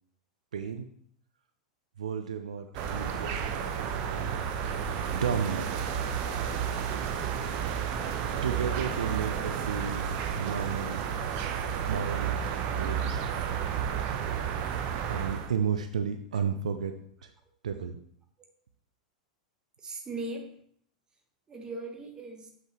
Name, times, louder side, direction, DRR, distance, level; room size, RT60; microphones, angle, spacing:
voice 1, 0.5-0.9 2.0-4.4 5.1-5.7 8.4-11.0 11.9-12.4 12.8-13.3 15.1-16.9 17.2-17.3 17.6-18.0, right 7 dB, 70° right, 8 dB, 0.5 m, -33 dB
sound 1, 2.7-15.5, right 7 dB, 40° right, 0.8 m, -31 dB
voice 2, 19.8-20.6 21.5-22.5, right 2 dB, 20° right, 3 dB, 1.3 m, -40 dB
7.6 x 5.9 x 3.1 m, 0.64 s
figure-of-eight pair, 90°, 4 cm